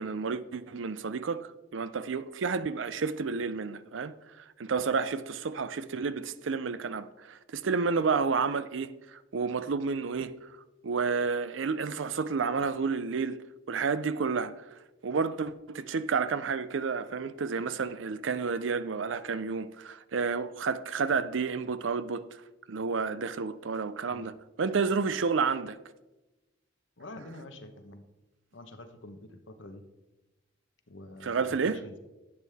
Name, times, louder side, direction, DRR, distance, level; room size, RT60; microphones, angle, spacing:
voice 1, 0.0-4.1 4.6-10.5 10.8-14.6 15.0-22.3 22.7-24.3 24.6-25.8 31.2-31.8, right 5 dB, 90° right, 0.5 m, -30 dB
voice 2, 27.0-28.0 28.5-29.8 30.9-32.0, left 1 dB, 80° left, 1.0 m, -46 dB
11.0 x 8.3 x 3.5 m
head